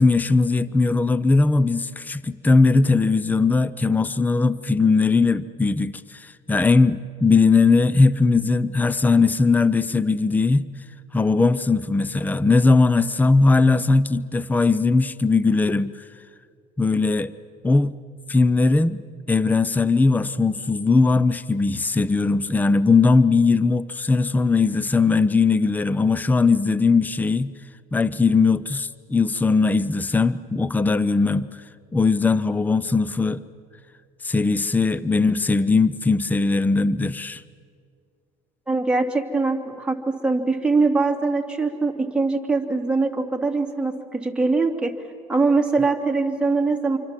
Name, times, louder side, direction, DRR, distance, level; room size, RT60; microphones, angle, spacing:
voice 1, 0.0-10.7 11.1-16.0 16.8-17.3 17.6-17.9 18.3-19.0 19.3-27.5 27.9-31.5 31.9-33.4 34.2-37.4, left 3 dB, 10° left, 0.6 m, -19 dB
voice 2, 38.7-44.9 45.3-47.0, right 3 dB, 5° right, 2.7 m, -22 dB
27.0 x 24.0 x 7.5 m
cardioid pair, 110°, 16 cm